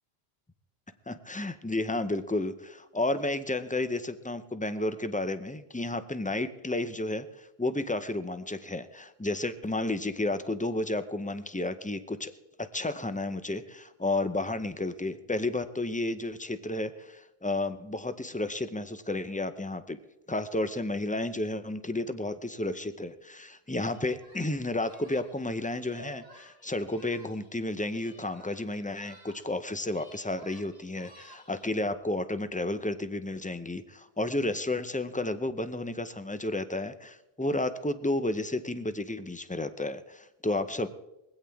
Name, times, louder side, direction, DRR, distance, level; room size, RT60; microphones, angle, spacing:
voice 1, 1.1-12.3 12.6-20.0 20.3-40.9, left 2 dB, 10° left, 11 dB, 0.4 m, -32 dB
Singing, 23.7-27.5 27.8-29.6 29.8-31.7, equal, 55° left, 6.8 m, -53 dB
21.0 x 16.0 x 3.5 m, 0.94 s
omnidirectional pair, 1.1 m